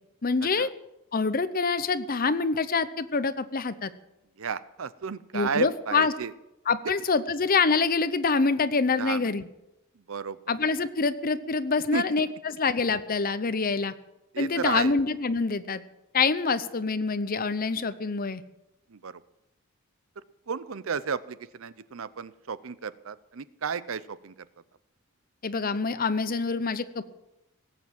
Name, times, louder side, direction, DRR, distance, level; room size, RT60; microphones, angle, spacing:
voice 1, 0.2-0.7 1.1-3.9 5.3-6.1 6.7-9.4 10.5-13.9 14.4-15.8 16.1-18.4 25.4-27.0, left 4 dB, 40° left, 13 dB, 0.7 m, -26 dB
voice 2, 4.4-6.3 9.0-9.3 10.1-10.5 11.9-12.0 14.3-15.0 18.9-19.2 20.5-24.5, right 6 dB, 65° right, 17 dB, 0.6 m, -33 dB
18.5 x 8.4 x 7.5 m, 0.89 s
head